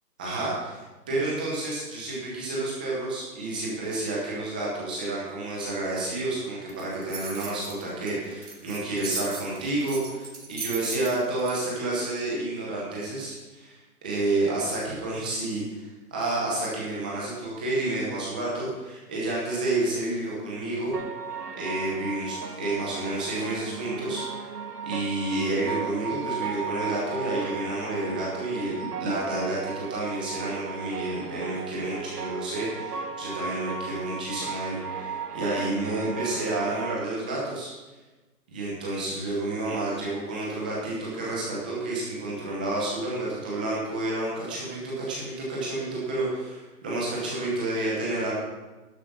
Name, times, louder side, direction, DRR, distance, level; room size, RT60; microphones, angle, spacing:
voice 1, 0.2-0.8 1.1-20.9 21.6-24.5 24.8-37.7 38.5-48.3, right 2 dB, 5° right, -5 dB, 0.7 m, -30 dB
sound 1, 6.7-11.5, right 4 dB, 65° right, 3.7 m, -37 dB
sound 2, 20.9-36.9, right 5 dB, 80° right, 1.6 m, -36 dB
12.0 x 7.3 x 5.9 m, 1.2 s
hypercardioid pair, 160°, 46 cm